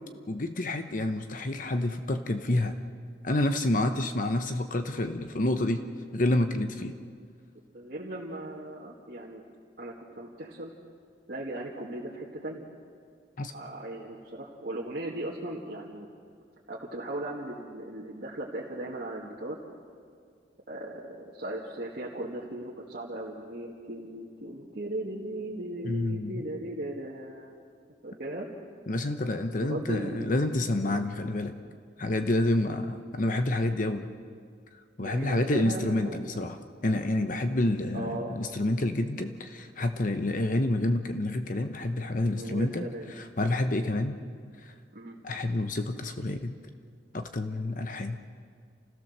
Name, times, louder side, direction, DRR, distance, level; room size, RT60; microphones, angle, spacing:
voice 1, 0.3-2.8 3.2-5.9 6.1-7.0 13.4-13.5 25.8-26.4 28.9-31.5 32.0-34.1 35.0-36.6 36.8-42.9 43.2-44.2 44.6-44.7 45.2-46.5 47.1-48.2, left 1 dB, 45° left, 7 dB, 0.9 m, -28 dB
voice 2, 7.7-9.4 9.8-10.7 11.3-12.7 13.5-16.1 16.7-19.6 20.7-27.6 28.0-28.5 29.6-30.4 30.8-31.0 35.0-36.2 37.9-38.4 42.1-43.1 44.9-45.2, right 1 dB, 55° right, -5 dB, 2.1 m, -37 dB
28.5 x 17.0 x 6.7 m, 2.2 s
head